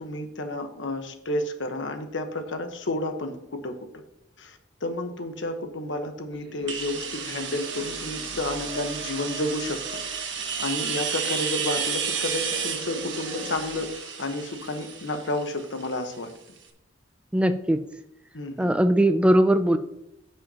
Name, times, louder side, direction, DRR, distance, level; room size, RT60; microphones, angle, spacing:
voice 1, 0.0-3.8 4.4-9.8 10.6-13.9 14.2-16.3 18.3-18.7, left 1 dB, 80° left, 6 dB, 1.2 m, -31 dB
sound 1, 6.3-13.9, left 1 dB, 50° right, 2.3 m, -43 dB
sound 2, 6.7-16.3, right 6 dB, 75° right, 1.4 m, -32 dB
voice 2, 17.3-17.8 18.6-19.8, right 1 dB, 5° right, 9 dB, 0.3 m, -20 dB
15.0 x 5.6 x 2.9 m, 0.83 s
head